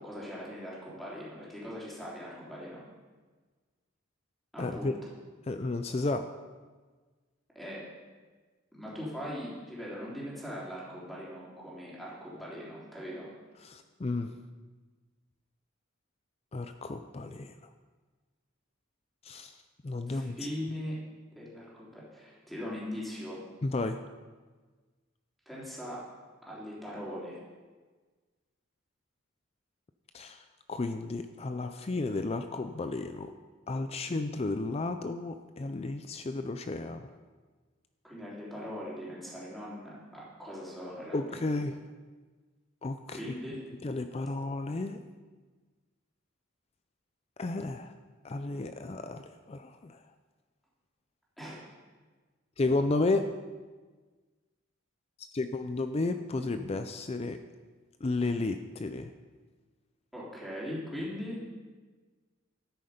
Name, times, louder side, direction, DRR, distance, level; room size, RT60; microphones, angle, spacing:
voice 1, 0.0-2.8 4.5-5.0 7.5-7.9 8.7-13.3 20.1-21.0 21.3-23.4 25.4-26.0 26.4-27.4 38.0-41.4 43.1-43.6 51.4-51.6 60.1-61.4, equal, ahead, -7 dB, 3.4 m, -40 dB
voice 2, 4.6-4.9 5.5-6.3 13.6-14.3 16.5-17.6 19.2-19.5 19.8-20.4 23.6-24.0 30.1-33.3 33.7-37.1 41.1-41.7 42.8-43.2 43.8-45.0 47.4-47.9 48.2-50.0 52.6-53.3 55.2-57.4 58.0-59.1, left 2 dB, 30° left, 9 dB, 0.4 m, -32 dB
13.0 x 9.4 x 5.1 m, 1.4 s
head